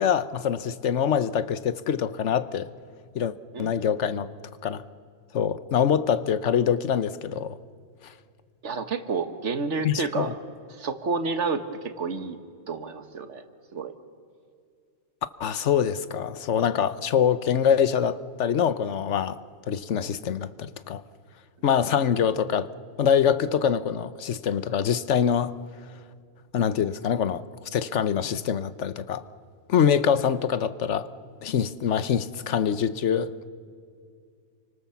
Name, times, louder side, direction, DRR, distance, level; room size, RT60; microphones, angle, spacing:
voice 1, 0.0-2.7 3.1-4.3 4.6-4.8 5.3-7.6 9.8-10.3 15.4-19.4 19.7-21.0 21.6-22.7 23.0-25.5 26.5-27.4 27.7-29.2 29.7-31.1 31.4-33.5, left 8 dB, 85° left, 14 dB, 1.2 m, -24 dB
voice 2, 8.6-10.3 10.7-12.4 12.7-13.4 13.7-13.9, right 4 dB, 85° right, 9 dB, 1.8 m, -30 dB
30.0 x 25.0 x 7.1 m, 2.2 s
omnidirectional pair, 1.2 m